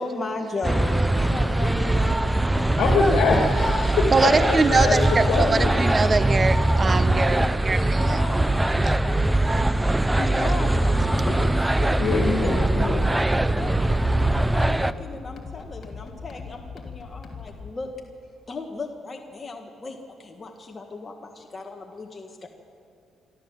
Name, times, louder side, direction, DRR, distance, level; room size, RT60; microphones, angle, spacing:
voice 1, 0.0-3.0 5.2-6.4 7.6-12.0 12.6-17.9 18.5-22.5, left 3 dB, 30° left, 2 dB, 1.7 m, -36 dB
sound 1, 0.6-14.9, right 1 dB, 10° right, 0.6 m, -22 dB
voice 2, 2.8-5.7 12.0-13.1, left 4 dB, 75° left, 0 dB, 2.4 m, -24 dB
voice 3, 4.1-8.4 9.4-9.7, right 4 dB, 35° right, 12 dB, 1.0 m, -23 dB
sound 2, 10.2-17.7, left 5 dB, 50° left, 2.9 m, -40 dB
25.5 x 13.5 x 7.5 m, 2.5 s
cardioid pair, 90°, 0 cm